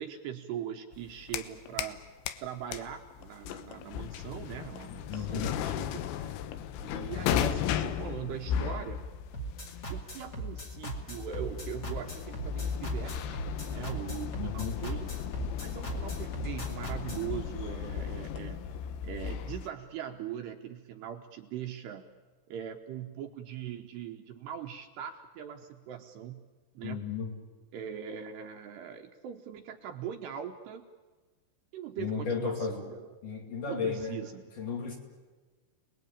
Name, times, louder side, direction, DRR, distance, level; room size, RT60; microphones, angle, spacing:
voice 1, 0.0-2.0 2.4-6.0 6.8-9.0 9.9-13.4 13.7-15.1 15.6-18.6 19.0-22.1 22.5-26.4 26.7-27.0 27.7-30.9 31.7-33.1 33.7-34.5, right 9 dB, 75° right, 4 dB, 2.8 m, -41 dB
sound 1, 0.9-2.0 2.3-19.7, left 9 dB, 75° left, 3.1 m, -35 dB
voice 2, 5.1-5.6 14.3-14.8 26.8-27.3 32.0-32.8 33.2-34.2 34.6-35.0, left 5 dB, 50° left, 2 dB, 3.5 m, -34 dB
sound 2, 9.3-17.3, right 3 dB, 35° left, 1.8 m, -39 dB
29.5 x 20.0 x 8.8 m, 1.3 s
omnidirectional pair, 5.6 m